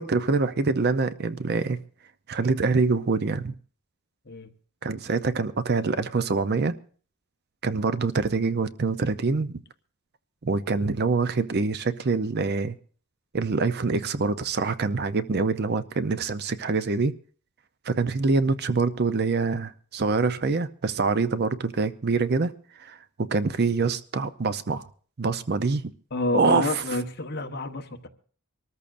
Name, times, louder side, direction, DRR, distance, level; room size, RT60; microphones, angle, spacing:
voice 1, 0.0-1.8 2.3-3.5 4.8-6.8 7.6-9.6 10.4-12.8 13.3-17.1 17.8-22.5 22.8-24.8 25.2-25.8 26.3-26.8, right 4 dB, 45° right, 0.6 m, -25 dB
voice 2, 26.1-28.1, left 2 dB, 45° left, 1.2 m, -29 dB
25.0 x 14.0 x 2.5 m
head